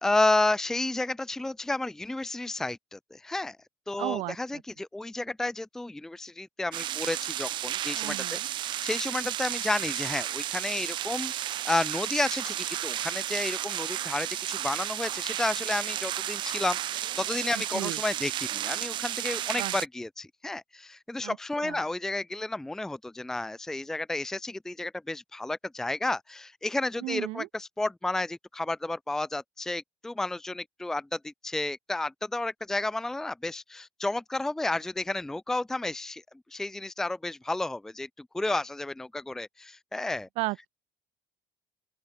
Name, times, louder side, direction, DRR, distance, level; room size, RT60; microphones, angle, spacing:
voice 1, 0.0-3.6 3.9-36.2 36.5-40.3, left 2 dB, 5° left, 0.5 m, -31 dB
voice 2, 4.0-4.4 8.0-8.5 17.7-18.0 19.6-19.7 21.2-21.4 21.6-21.8 27.0-27.5 40.4-40.7, right 23 dB, 80° right, 2.2 m, -33 dB
sound 1, 6.7-19.9, right 12 dB, 55° right, 3.9 m, -33 dB
open air
cardioid pair, 135°, 10 cm